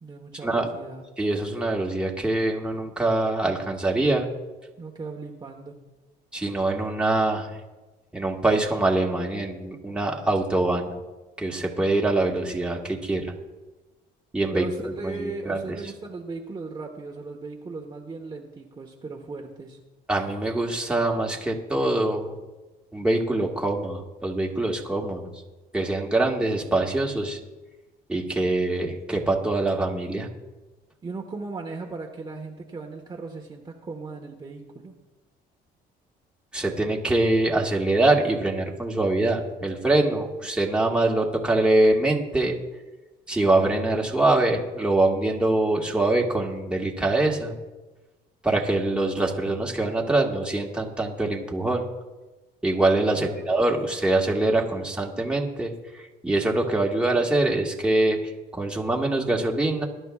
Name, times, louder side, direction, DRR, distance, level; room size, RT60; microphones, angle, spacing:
voice 1, 0.0-1.1 4.8-5.8 14.5-19.8 31.0-34.9 53.1-53.5, right 3 dB, 25° right, 0 dB, 1.2 m, -37 dB
voice 2, 1.2-4.3 6.3-7.5 8.1-10.9 11.4-13.3 14.3-15.8 20.1-22.3 22.9-25.3 25.7-27.4 28.1-30.3 36.5-42.6 43.3-47.5 48.4-51.8 52.6-55.7 56.2-58.2 58.5-59.9, right 2 dB, 5° right, -1 dB, 1.7 m, -24 dB
20.5 x 11.0 x 2.4 m, 1.1 s
cardioid pair, 110°, 17 cm